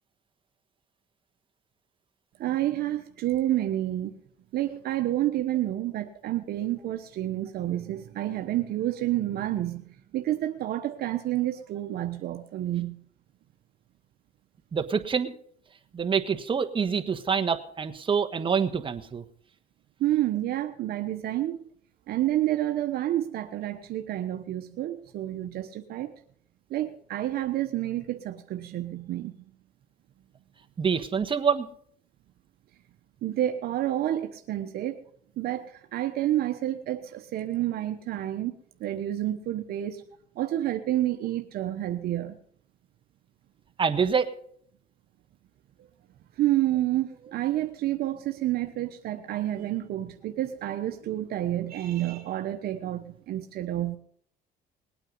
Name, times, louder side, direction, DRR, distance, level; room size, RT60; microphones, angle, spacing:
voice 1, 2.4-4.1 4.5-9.8 10.1-13.0 20.0-21.7 22.1-26.1 26.7-29.4 33.2-35.0 35.4-40.0 40.3-42.4 46.4-54.0, right 13 dB, 65° right, 6 dB, 1.1 m, -29 dB
voice 2, 14.7-15.3 15.9-19.2 30.8-31.7 43.8-44.3, right 6 dB, 30° right, 6 dB, 1.3 m, -26 dB
20.5 x 9.0 x 5.4 m, 0.63 s
cardioid pair, 110°, 17 cm